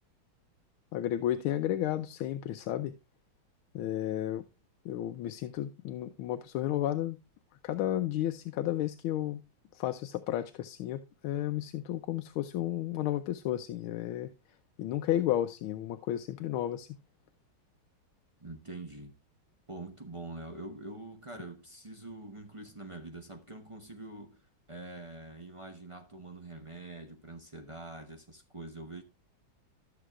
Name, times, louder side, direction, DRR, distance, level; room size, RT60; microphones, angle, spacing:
voice 1, 0.9-2.9 3.7-4.4 4.8-7.2 7.6-9.4 9.7-14.3 14.8-16.9, left 12 dB, 85° left, 1.5 m, -32 dB
voice 2, 18.4-19.1 19.7-29.0, right 2 dB, 30° right, 0.6 m, -45 dB
13.5 x 6.9 x 2.3 m
omnidirectional pair, 2.2 m